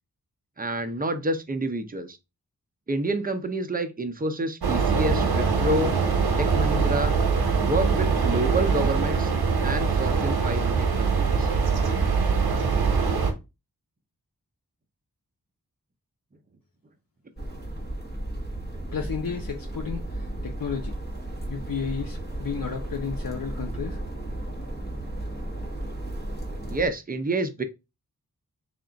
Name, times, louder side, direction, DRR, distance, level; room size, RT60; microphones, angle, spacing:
voice 1, 0.6-2.2 2.9-5.9 6.4-7.2 7.6-9.3 9.6-11.5 26.7-27.6, right 1 dB, 25° right, 0.6 m, -28 dB
sound 1, 4.6-13.3, right 5 dB, 80° right, 0.9 m, -23 dB
sound 2, 17.4-26.9, right 1 dB, 25° left, 1.1 m, -34 dB
voice 2, 18.9-20.9 21.5-24.0, left 6 dB, 65° left, 0.7 m, -33 dB
3.5 x 2.4 x 3.8 m
wide cardioid pair, 60°, 37 cm